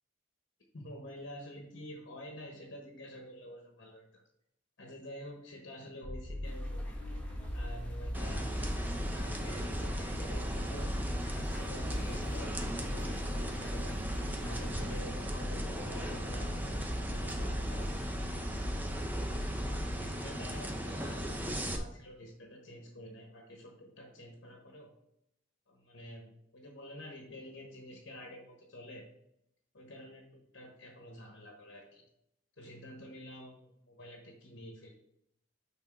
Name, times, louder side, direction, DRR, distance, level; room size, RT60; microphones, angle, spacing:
voice 1, 0.7-4.2 4.8-7.0 7.5-10.9 11.3-13.9 14.4-18.8 19.6-24.9 25.7-29.0 29.7-32.0 32.6-34.9, left 1 dB, 60° left, 1 dB, 1.2 m, -49 dB
sound 1, 6.0-20.0, equal, 70° right, 1.7 m, -38 dB
sound 2, 6.4-15.0, left 1 dB, 10° left, 1.4 m, -51 dB
sound 3, 8.1-21.8, equal, 10° right, 0.7 m, -38 dB
6.2 x 4.0 x 5.8 m, 0.79 s
head